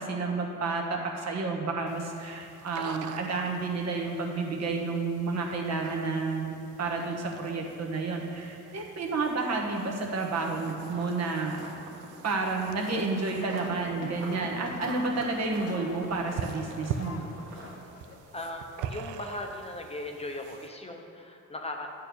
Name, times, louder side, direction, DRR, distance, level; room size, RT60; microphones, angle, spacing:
voice 1, 0.0-6.5 6.8-11.6 12.2-17.2, right 3 dB, 60° right, 1 dB, 1.3 m, -30 dB
sound 1, 1.9-20.7, right 7 dB, 85° right, 0.5 m, -44 dB
sound 2, 10.3-17.8, right 2 dB, 45° right, 1.5 m, -46 dB
sound 3, 13.4-18.6, left 4 dB, 55° left, 0.9 m, -45 dB
voice 2, 18.3-21.9, left 1 dB, 20° left, 3 dB, 0.8 m, -38 dB
8.9 x 4.4 x 6.9 m, 2.5 s
cardioid pair, 90°, 30 cm